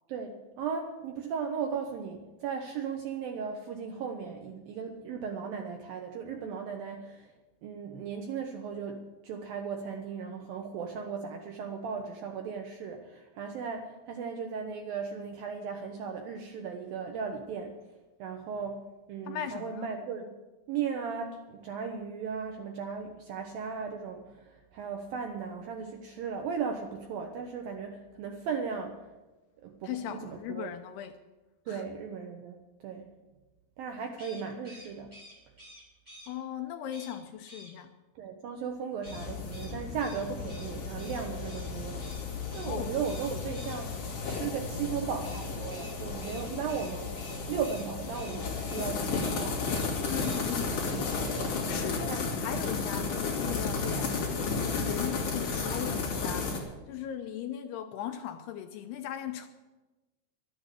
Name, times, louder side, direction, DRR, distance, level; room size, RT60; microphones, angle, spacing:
voice 1, 0.1-7.3 7.6-17.7 18.2-20.4 20.7-29.0 29.6-30.7 31.7-32.6 32.8-33.1 33.8-35.1 38.2-42.0 42.5-47.2 47.5-50.1 52.1-52.3 54.7-55.0, right 6 dB, 75° right, 3 dB, 2.1 m, -36 dB
voice 2, 19.3-19.9 29.8-31.2 31.7-31.8 36.3-37.9 42.6-42.9 50.0-50.8 51.4-59.5, left 10 dB, 80° left, 7 dB, 2.5 m, -38 dB
sound 1, 34.1-36.3 36.9-37.2 37.5-37.7 39.0-41.7 42.0-42.2 42.5-42.8 43.0-43.8 45.2-47.9 48.1-48.4 48.7-48.9 49.2-49.9 50.2-50.4, equal, 10° right, 3.0 m, -50 dB
raw cheesyfireworks, 39.1-56.6, left 4 dB, 50° left, 3.6 m, -33 dB
12.0 x 10.5 x 8.3 m, 1.1 s
omnidirectional pair, 5.2 m